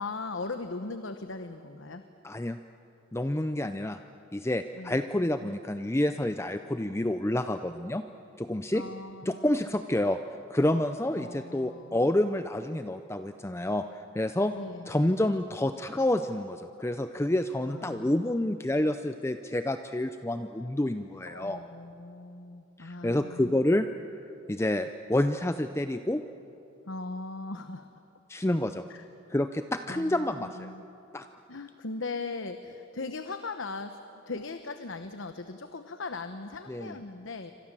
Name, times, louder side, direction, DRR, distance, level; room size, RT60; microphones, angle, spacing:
voice 1, 0.0-2.0 4.8-5.0 5.4-5.6 8.7-9.7 11.2-12.1 14.5-14.9 15.2-15.3 17.7-18.4 21.2-23.5 26.9-28.0 28.9-29.1 29.9-30.8 31.5-37.5, left 3 dB, 75° left, 9 dB, 1.0 m, -39 dB
voice 2, 2.2-2.6 3.1-4.0 4.3-8.1 8.4-8.8 9.3-10.2 10.5-14.5 14.9-21.6 22.8-23.9 24.5-26.2 28.3-28.8 29.3-30.7 31.1-31.3 36.7-37.0, left 1 dB, 15° left, 9 dB, 0.5 m, -28 dB
28.5 x 25.0 x 7.5 m, 2.9 s
head